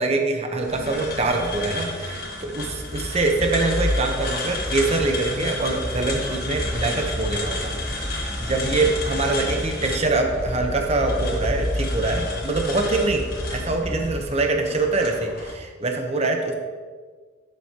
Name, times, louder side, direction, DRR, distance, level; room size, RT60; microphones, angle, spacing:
voice 1, 0.0-7.7 8.2-16.5, right 3 dB, 35° right, 3 dB, 0.9 m, -24 dB
sound 1, 0.6-15.5, left 2 dB, 50° left, 1.6 m, -31 dB
sound 2, 4.5-14.2, equal, 10° left, 0.7 m, -32 dB
11.0 x 7.4 x 2.9 m, 1.5 s
head